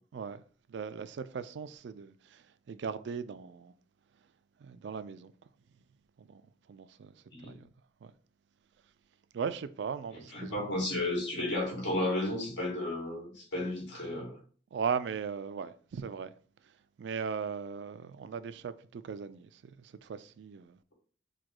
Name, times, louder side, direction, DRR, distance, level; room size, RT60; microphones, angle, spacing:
voice 1, 0.1-0.4 0.7-3.7 4.6-5.3 6.2-6.4 6.7-7.2 7.4-7.7 8.0-8.1 9.3-10.6 14.7-16.3 17.0-20.8, right 6 dB, 75° right, 0.3 m, -38 dB
voice 2, 10.1-14.4, left 1 dB, 85° left, 1.9 m, -33 dB
4.8 x 2.2 x 3.7 m
head